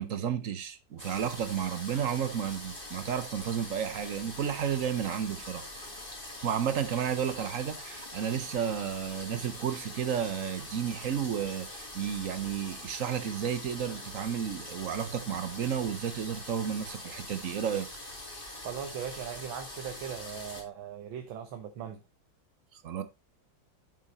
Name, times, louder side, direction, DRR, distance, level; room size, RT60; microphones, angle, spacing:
voice 1, 0.0-5.6 6.4-17.9 22.7-23.0, right 8 dB, 55° right, 1.0 m, -32 dB
sound 1, 1.0-20.6, left 1 dB, 25° left, 2.8 m, -43 dB
voice 2, 18.6-22.0, right 8 dB, 90° right, 1.8 m, -39 dB
8.3 x 6.6 x 4.1 m
omnidirectional pair, 2.1 m